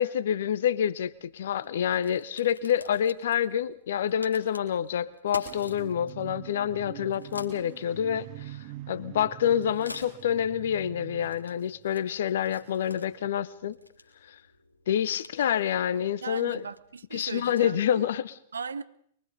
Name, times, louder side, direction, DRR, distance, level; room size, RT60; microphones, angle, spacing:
voice 1, 0.0-8.6 8.9-13.8 14.9-16.6 17.1-18.3, left 9 dB, 55° left, 0.9 m, -27 dB
Crack, 0.9-17.0, left 2 dB, 80° left, 3.4 m, -50 dB
sound 1, 5.4-13.3, right 16 dB, 40° right, 1.1 m, -45 dB
voice 2, 16.2-18.1 18.5-18.8, right 5 dB, 70° right, 0.9 m, -37 dB
24.0 x 23.5 x 5.3 m
figure-of-eight pair, 105°, 0 cm